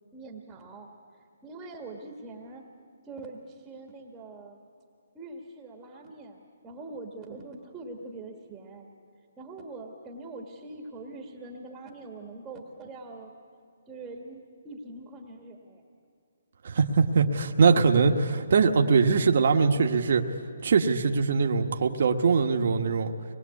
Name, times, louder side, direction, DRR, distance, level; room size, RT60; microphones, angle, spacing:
voice 1, 0.1-0.9 1.4-2.6 3.0-4.6 5.1-8.9 9.4-13.3 13.9-15.8, right 2 dB, 10° right, 1 dB, 1.7 m, -43 dB
voice 2, 16.6-20.2 20.6-23.1, right 5 dB, 55° right, 3 dB, 1.4 m, -22 dB
25.0 x 21.0 x 8.4 m, 2.4 s
hypercardioid pair, 165°, 0 cm